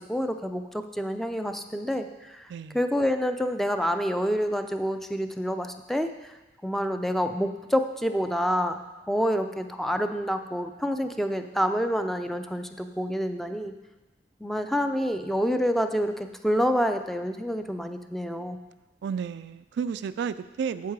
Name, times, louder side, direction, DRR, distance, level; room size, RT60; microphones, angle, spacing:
voice 1, 0.1-2.5 2.7-6.3 6.6-13.7 14.4-18.6, equal, ahead, 7 dB, 0.4 m, -28 dB
voice 2, 19.0-20.9, right 6 dB, 70° right, 13 dB, 0.3 m, -32 dB
8.3 x 7.2 x 4.7 m, 1.1 s
head